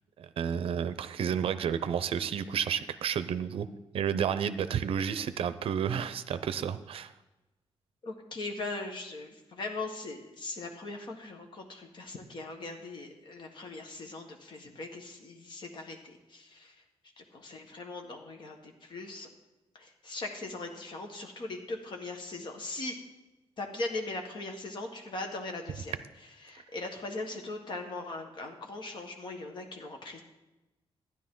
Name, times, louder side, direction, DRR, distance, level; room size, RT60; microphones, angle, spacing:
voice 1, 0.2-3.7 3.9-7.1, right 8 dB, 65° right, 12 dB, 0.5 m, -31 dB
voice 2, 8.0-16.8 17.2-19.3 19.7-23.0 23.6-30.2, left 2 dB, 50° left, 3 dB, 1.5 m, -40 dB
12.5 x 10.0 x 3.8 m, 1.0 s
wide cardioid pair, 180°, 10 cm